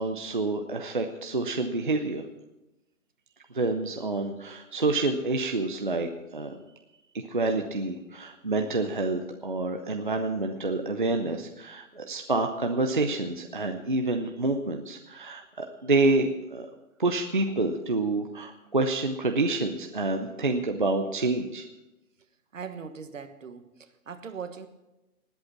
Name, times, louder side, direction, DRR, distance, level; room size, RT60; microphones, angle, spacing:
voice 1, 0.0-2.3 3.5-6.6 7.3-16.7 17.0-21.6, right 2 dB, 35° right, 4 dB, 0.6 m, -28 dB
voice 2, 22.5-24.7, right 6 dB, 60° right, 9 dB, 1.4 m, -40 dB
19.5 x 8.0 x 5.9 m, 1.0 s
hypercardioid pair, 180°, 45 cm